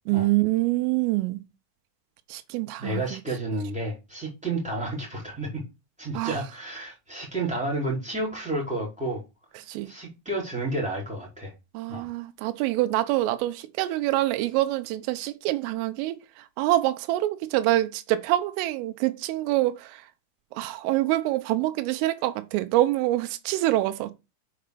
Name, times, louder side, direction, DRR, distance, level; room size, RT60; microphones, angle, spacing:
voice 1, 0.1-1.4 2.3-3.2 6.1-6.4 9.6-9.9 11.7-16.2 16.6-20.0 20.5-24.1, right 16 dB, 80° right, 3.4 m, -25 dB
voice 2, 2.8-5.6 6.0-9.2 9.9-11.5 11.9-12.0, right 2 dB, ahead, 3.9 m, -31 dB
6.8 x 6.5 x 6.8 m
omnidirectional pair, 5.8 m